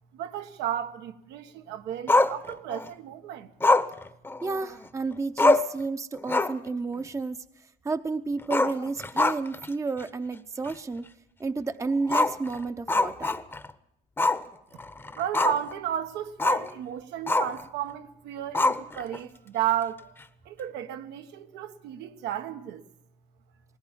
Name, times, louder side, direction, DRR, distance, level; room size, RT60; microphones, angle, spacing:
voice 1, 0.1-3.5 15.1-20.1 20.4-22.8, right 10 dB, 90° right, 1.4 m, -33 dB
Growling, 2.1-2.9 3.6-4.9 5.1-5.2 5.4-5.8 6.2-6.7 7.0-7.1 8.4-9.7 10.0-10.1 10.7-10.8 12.1-13.7 14.2-14.4 14.8-15.7 16.4-16.7 17.3-17.6 18.5-19.2, left 2 dB, 15° left, 0.9 m, -24 dB
voice 2, 4.4-7.4 7.8-11.1 11.4-13.4, right 3 dB, 15° right, 0.7 m, -31 dB
19.5 x 18.0 x 7.4 m
cardioid pair, 110°, 17 cm